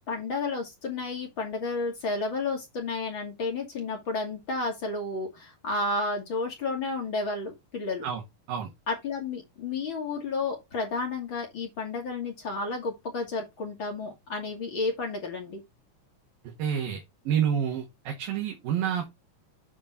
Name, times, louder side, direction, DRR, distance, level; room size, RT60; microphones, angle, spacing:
voice 1, 0.1-8.0 8.9-15.6, left 3 dB, 35° left, 2.7 m, -31 dB
voice 2, 16.6-19.1, right 8 dB, 75° right, 3.5 m, -29 dB
8.6 x 4.3 x 4.5 m
omnidirectional pair, 4.2 m